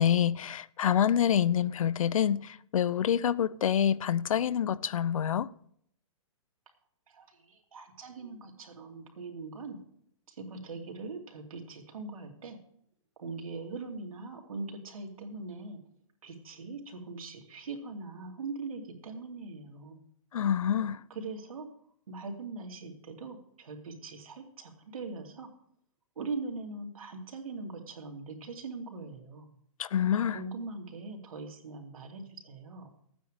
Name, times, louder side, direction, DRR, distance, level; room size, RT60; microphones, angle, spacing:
voice 1, 0.0-5.5 20.3-21.0 29.8-30.4, left 9 dB, 75° left, 0.5 m, -27 dB
voice 2, 7.1-9.8 10.3-12.6 13.2-15.8 16.2-20.0 21.1-21.7 22.1-25.5 26.2-29.5 30.3-32.9, right 3 dB, 80° right, 2.7 m, -41 dB
13.5 x 9.2 x 5.0 m
hypercardioid pair, 170°, 17 cm